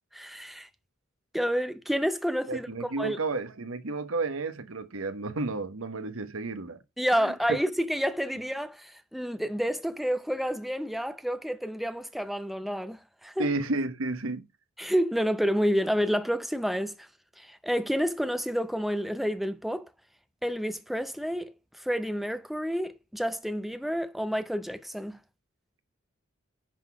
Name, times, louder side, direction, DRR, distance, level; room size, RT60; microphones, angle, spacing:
voice 1, 0.1-0.7 1.3-3.2 7.0-13.5 14.8-17.1 17.4-19.9 20.4-25.2, equal, ahead, 0.5 m, -29 dB
voice 2, 2.5-6.8 7.2-7.3 13.4-14.5, right 3 dB, 80° right, 1.0 m, -32 dB
10.5 x 4.1 x 5.9 m
head